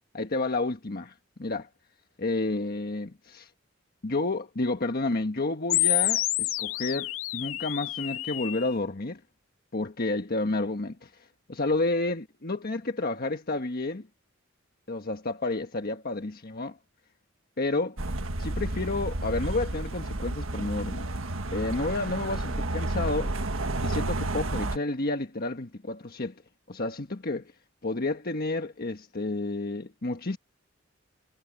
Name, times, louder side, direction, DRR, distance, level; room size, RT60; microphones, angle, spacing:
voice 1, 0.1-1.1 1.4-1.7 2.2-3.5 4.0-9.2 9.7-11.1 11.5-14.1 14.9-16.8 17.6-18.0 18.4-21.1 21.5-23.3 23.8-26.3 26.7-27.5 27.8-30.4, left 2 dB, 50° left, 1.4 m, -30 dB
sound 1, 5.7-8.7, left 17 dB, 85° left, 0.6 m, -28 dB
sound 2, 18.0-24.8, right 2 dB, 85° right, 1.6 m, -31 dB
head